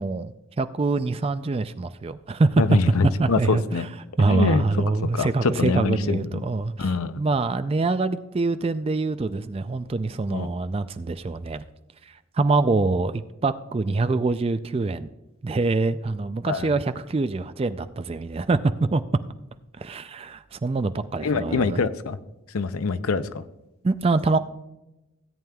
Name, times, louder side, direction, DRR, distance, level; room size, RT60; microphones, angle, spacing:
voice 1, 0.0-2.6 3.2-3.6 4.2-6.9 7.2-11.6 12.1-15.1 15.4-19.0 19.7-21.8 23.8-24.4, right 3 dB, 25° right, 12 dB, 0.3 m, -25 dB
voice 2, 2.6-3.9 4.3-4.6 5.0-6.4 6.8-7.2 10.3-10.5 16.5-16.7 21.2-22.2 22.5-23.4, left 4 dB, 85° left, 12 dB, 0.6 m, -24 dB
16.5 x 9.0 x 2.3 m, 0.96 s
head